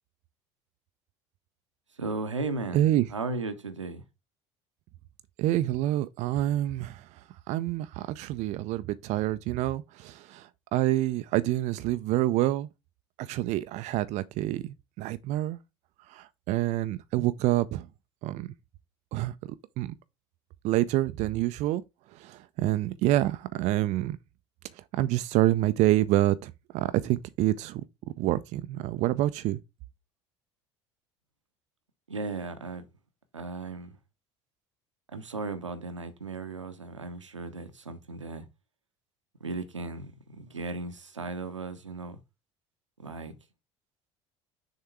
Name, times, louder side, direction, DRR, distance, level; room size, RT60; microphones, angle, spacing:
voice 1, 2.0-4.0 32.1-32.8 33.3-33.9 35.1-38.5 39.4-42.2 43.0-43.3, right 3 dB, 90° right, 0.9 m, -36 dB
voice 2, 2.7-3.1 5.4-7.0 7.5-12.7 13.2-15.6 16.1-17.9 18.2-18.5 19.1-19.3 19.8-19.9 20.6-21.8 22.1-24.2 24.9-27.8 28.2-29.6, right 15 dB, 50° right, 0.5 m, -27 dB
6.6 x 3.6 x 4.5 m
figure-of-eight pair, 65°, 15 cm